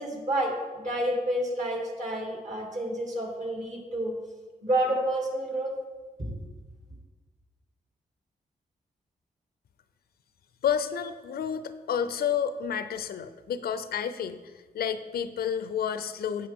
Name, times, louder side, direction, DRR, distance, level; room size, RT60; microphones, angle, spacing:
voice 1, 0.0-4.1 4.6-5.7 6.2-6.3, right 1 dB, 50° right, -1 dB, 2.7 m, -29 dB
voice 2, 10.6-14.4 14.7-16.5, left 8 dB, 85° left, 12 dB, 0.5 m, -30 dB
8.8 x 7.8 x 3.6 m, 1.3 s
cardioid pair, 65°, 16 cm